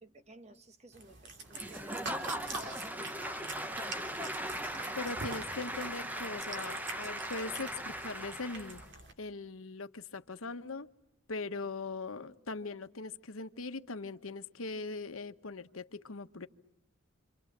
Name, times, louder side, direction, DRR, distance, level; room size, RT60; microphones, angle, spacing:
voice 1, 0.0-3.7, right 1 dB, 35° right, 1.5 m, -55 dB
Cat, 0.9-9.1, right 3 dB, 60° right, 3.1 m, -46 dB
Applause / Crowd, 1.5-8.9, right 1 dB, 10° right, 1.1 m, -39 dB
voice 2, 4.9-8.8 9.2-10.9 11.3-16.5, left 3 dB, 85° left, 1.2 m, -40 dB
27.5 x 27.5 x 7.4 m
head